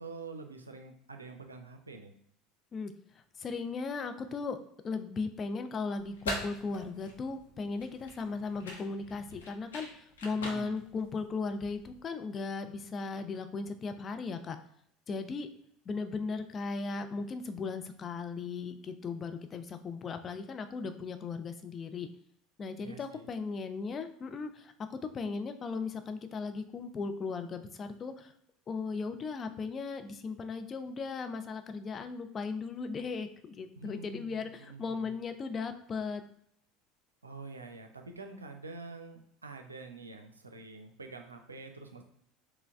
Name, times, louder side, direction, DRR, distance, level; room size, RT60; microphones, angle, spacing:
voice 1, 0.0-2.1 10.3-10.9 22.8-23.3 33.7-35.2 37.2-42.0, right 3 dB, 90° right, 5 dB, 0.5 m, -47 dB
voice 2, 3.4-4.6 4.8-14.6 15.1-15.5 15.9-22.1 22.6-28.3 28.7-36.2, left 4 dB, 35° left, 8 dB, 0.4 m, -37 dB
sound 1, 6.0-12.0, left 1 dB, 80° left, 0.9 m, -43 dB
4.5 x 2.2 x 3.5 m, 0.70 s
figure-of-eight pair, 70°, 0 cm